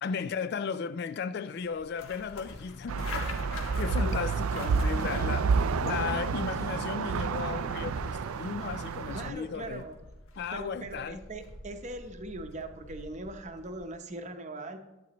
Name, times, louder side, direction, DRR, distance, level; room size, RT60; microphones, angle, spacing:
voice 1, 0.0-3.3 3.7-5.5 5.8-9.9 10.4-11.2, left 6 dB, 50° left, 0.3 m, -35 dB
sound 1, 1.6-13.9, left 2 dB, 80° left, 1.3 m, -46 dB
sound 2, 2.9-9.3, right 5 dB, 85° right, 0.4 m, -30 dB
voice 2, 9.1-10.0 10.5-14.8, right 2 dB, 35° right, 0.8 m, -40 dB
11.5 x 8.5 x 3.0 m
head